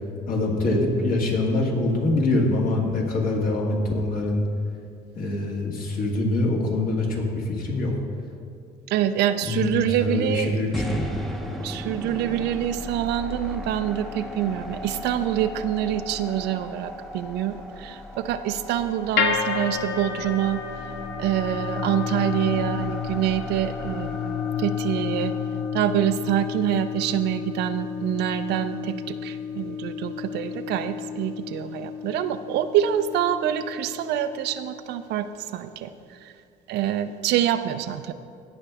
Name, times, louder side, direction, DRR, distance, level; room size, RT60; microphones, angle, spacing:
voice 1, 0.3-4.4 5.2-7.9 9.4-11.2, left 2 dB, 55° left, -1 dB, 2.0 m, -24 dB
voice 2, 8.9-10.8 11.1-11.3 11.6-20.6 21.2-25.3 25.7-36.3 36.7-38.1, right 11 dB, 80° right, 10 dB, 0.5 m, -26 dB
sound 1, 10.7-26.9, equal, ahead, 0.7 m, -37 dB
sound 2, 19.2-35.4, left 7 dB, 85° left, 0.9 m, -31 dB
17.0 x 5.9 x 3.5 m, 2.3 s
cardioid pair, 110°, 17 cm